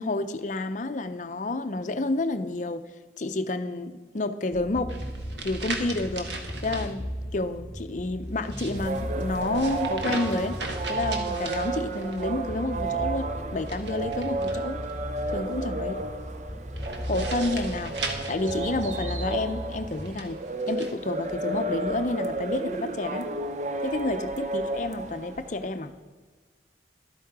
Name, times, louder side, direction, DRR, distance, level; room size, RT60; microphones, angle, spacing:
voice 1, 0.0-2.8 3.2-5.0 5.4-10.6 10.9-14.8 15.3-16.0 17.1-20.4 20.7-23.3 23.8-25.9, left 2 dB, 45° left, 10 dB, 0.6 m, -30 dB
sound 1, 4.5-20.0, equal, ahead, 2.3 m, -37 dB
sound 2, 4.9-6.9 8.3-12.2 13.6-14.9 16.8-19.2 19.9-20.9, right 3 dB, 80° right, 1.4 m, -38 dB
sound 3, 8.7-25.7, right 2 dB, 40° right, 0.6 m, -33 dB
12.0 x 8.3 x 4.8 m, 1.4 s
head